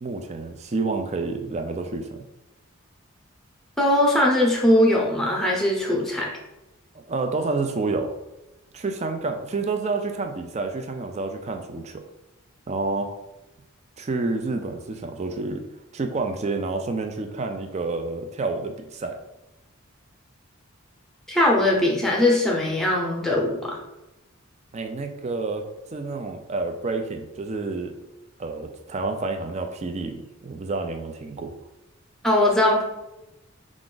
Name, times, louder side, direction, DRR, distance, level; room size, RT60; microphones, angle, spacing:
voice 1, 0.0-2.2 7.1-8.1 8.7-12.0 12.7-13.1 14.0-15.6 15.9-19.2 24.7-27.9 28.4-31.5, right 3 dB, 30° right, 5 dB, 0.4 m, -29 dB
voice 2, 3.8-6.3 21.3-23.8 32.2-32.8, left 1 dB, ahead, -3 dB, 0.8 m, -20 dB
4.8 x 2.5 x 3.8 m, 0.97 s
head